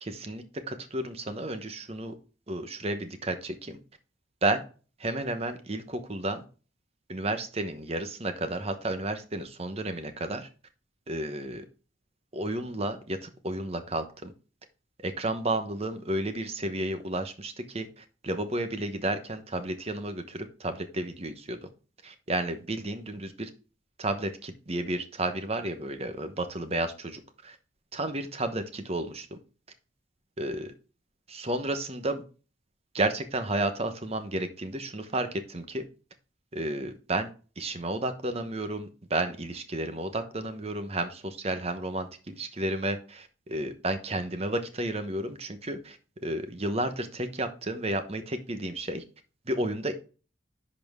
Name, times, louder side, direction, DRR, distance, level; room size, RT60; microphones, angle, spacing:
voice 1, 0.0-2.1 2.5-3.8 4.4-4.6 5.0-6.4 7.1-10.5 11.1-11.6 12.3-14.3 15.0-21.7 22.0-23.5 24.0-26.9 27.4-27.6 27.9-29.3 30.4-30.7 31.3-32.2 32.9-35.8 36.5-37.3 37.6-46.0 46.2-49.0 49.5-49.9, right 1 dB, 30° right, 9 dB, 1.0 m, -32 dB
10.5 x 4.3 x 3.6 m, 0.36 s
head